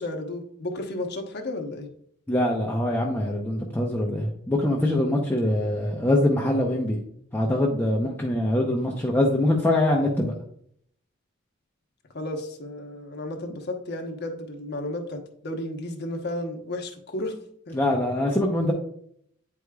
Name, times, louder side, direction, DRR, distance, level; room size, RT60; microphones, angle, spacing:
voice 1, 0.0-1.9 12.1-17.4 17.7-17.8, left 1 dB, 55° left, 4 dB, 1.0 m, -33 dB
voice 2, 2.3-7.0 7.3-10.3 17.7-18.7, left 1 dB, 10° left, -2 dB, 0.7 m, -23 dB
9.2 x 4.8 x 2.3 m, 0.66 s
head